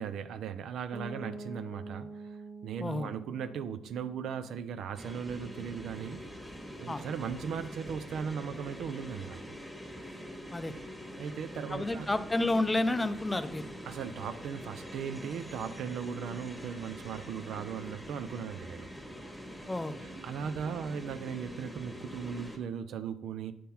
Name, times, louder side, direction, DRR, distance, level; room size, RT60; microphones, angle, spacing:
voice 1, 0.0-6.3 6.8-9.4 11.2-12.1 13.9-18.9 20.0-23.5, right 7 dB, 75° right, 12 dB, 0.4 m, -38 dB
Piano, 0.9-6.6, right 3 dB, 35° right, 1.5 m, -47 dB
voice 2, 2.8-3.1 6.9-7.0 10.5-10.7 11.7-13.7 19.7-20.0, left 2 dB, 15° left, 11 dB, 0.4 m, -30 dB
sound 1, 4.9-22.6, equal, ahead, 1.4 m, -45 dB
8.4 x 3.8 x 4.2 m, 0.81 s
cardioid pair, 90°, 0 cm